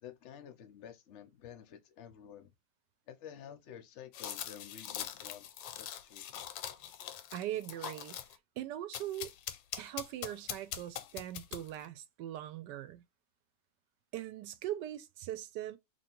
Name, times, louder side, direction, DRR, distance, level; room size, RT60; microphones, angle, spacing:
voice 1, 0.0-2.5 3.1-6.4, left 9 dB, 65° left, 0.7 m, -51 dB
sound 1, 4.1-8.4 8.9-11.9, left 10 dB, 90° left, 1.3 m, -42 dB
voice 2, 7.3-8.2 8.6-9.3 9.8-13.0 14.1-15.8, right 12 dB, 75° right, 1.1 m, -40 dB
3.0 x 2.8 x 4.3 m
omnidirectional pair, 2.0 m